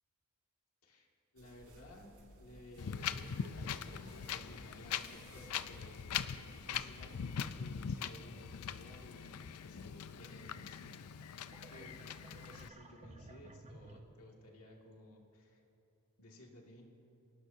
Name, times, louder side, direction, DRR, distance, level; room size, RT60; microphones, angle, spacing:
voice 1, 1.3-3.3 3.5-3.8 4.1-11.0 11.7-12.1 12.5-15.6 16.2-16.8, left 1 dB, 70° left, -1 dB, 2.2 m, -56 dB
sound 1, 1.4-6.8, right 1 dB, 80° right, 4.3 m, -60 dB
Wind, 2.8-12.7, left 7 dB, 85° left, 0.5 m, -42 dB
sound 2, 3.0-8.9 9.4-14.0, right 2 dB, 30° right, 0.8 m, -58 dB
26.0 x 18.0 x 2.8 m, 3.0 s
head